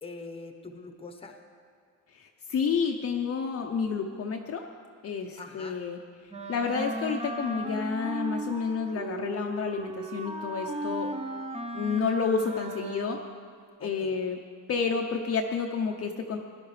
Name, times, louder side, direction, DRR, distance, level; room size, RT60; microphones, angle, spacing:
voice 1, 0.0-1.4 5.4-5.8 13.8-14.1, left 3 dB, 15° left, 4 dB, 0.9 m, -43 dB
voice 2, 2.1-4.6 5.0-6.0 6.5-11.1 11.7-13.2 13.8-14.4 14.7-16.4, left 5 dB, 45° left, 2 dB, 0.6 m, -30 dB
Wind instrument woodwind instrument, 6.3-13.5, right 2 dB, 20° right, 0.7 m, -36 dB
17.5 x 11.0 x 3.2 m, 2.1 s
cardioid pair, 150°, 33 cm